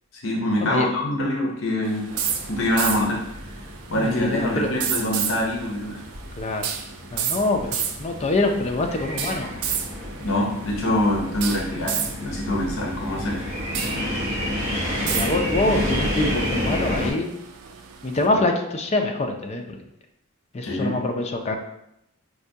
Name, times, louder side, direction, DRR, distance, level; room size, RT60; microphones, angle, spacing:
voice 1, 0.2-2.1 2.5-3.2 3.9-6.0 10.2-13.5 20.6-21.0, left 1 dB, 65° left, -1 dB, 0.7 m, -24 dB
sound 1, 1.8-18.3, right 8 dB, 90° right, 0.4 m, -33 dB
sound 2, 2.1-17.1, equal, 35° right, 0.9 m, -31 dB
voice 2, 3.9-4.7 6.4-6.7 7.1-9.5 13.9-17.3 18.0-19.8 20.5-21.6, left 2 dB, 30° left, 4 dB, 0.4 m, -25 dB
4.7 x 2.2 x 2.6 m, 0.81 s
head